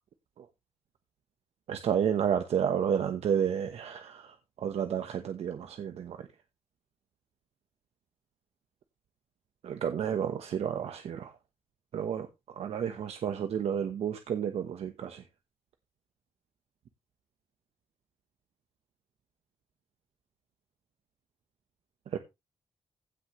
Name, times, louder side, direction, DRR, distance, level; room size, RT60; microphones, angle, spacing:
voice 1, 1.7-4.2 4.6-6.2 9.6-11.3 11.9-12.3 12.6-15.2 22.1-22.2, right 8 dB, 85° right, 1.1 m, -31 dB
16.0 x 6.3 x 3.2 m
wide cardioid pair, 175°, 11 cm